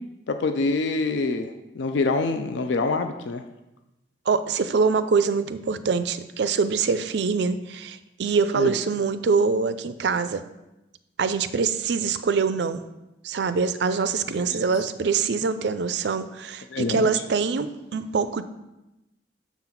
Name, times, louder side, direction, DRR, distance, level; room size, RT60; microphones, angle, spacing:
voice 1, 0.3-3.4 8.6-8.7 14.4-14.5 16.7-17.1, left 3 dB, 75° left, 7 dB, 0.4 m, -25 dB
voice 2, 4.3-10.4 11.2-12.8 13.2-18.4, right 5 dB, 65° right, 12 dB, 0.4 m, -24 dB
7.2 x 3.9 x 5.8 m, 0.96 s
head